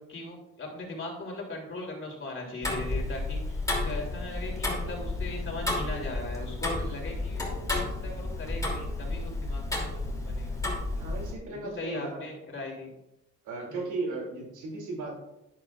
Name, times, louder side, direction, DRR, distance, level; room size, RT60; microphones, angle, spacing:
voice 1, 0.1-10.6 11.6-12.9 13.7-13.8, left 2 dB, 40° left, -1 dB, 3.1 m, -39 dB
Tick-tock, 2.6-11.3, left 2 dB, 10° left, 2.9 m, -32 dB
voice 2, 11.0-12.3 13.4-15.2, right 3 dB, 90° right, -1 dB, 2.8 m, -36 dB
10.5 x 10.5 x 2.5 m, 0.91 s
cardioid pair, 90°, 30 cm